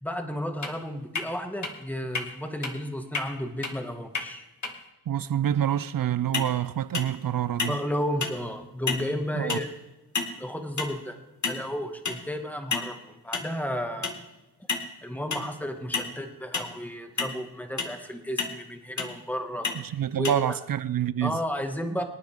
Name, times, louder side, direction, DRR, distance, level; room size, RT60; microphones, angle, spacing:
voice 1, 0.0-4.4 7.7-9.7 10.4-11.2 11.5-14.1 15.0-19.7 20.2-20.6 21.2-22.0, equal, 5° left, 1.9 m, -33 dB
sound 1, 0.6-0.7 1.1-1.3 1.6-1.7 2.1-2.3 2.6-2.7 3.1-3.3 3.6-3.7 4.1-4.3 4.6-4.7 6.3-6.5 6.9-7.2 7.6-7.9 8.2-8.4 8.9-9.1 9.5-9.7 10.1-10.4 10.8-11.0 11.4-11.7 12.1-12.2 12.7-12.9 13.3-13.5 14.0-14.2 14.7-14.9 15.3-15.5 15.9-16.1 16.5-16.7 17.2-17.3 17.8-18.0 18.4-18.6 19.0-19.1 19.6-19.8 20.2-20.3, left 4 dB, 45° left, 1.9 m, -30 dB
voice 2, 5.1-7.8 9.3-9.6 19.8-21.4, right 10 dB, 55° right, 0.6 m, -27 dB
24.5 x 9.3 x 3.7 m
cardioid pair, 60°, 40 cm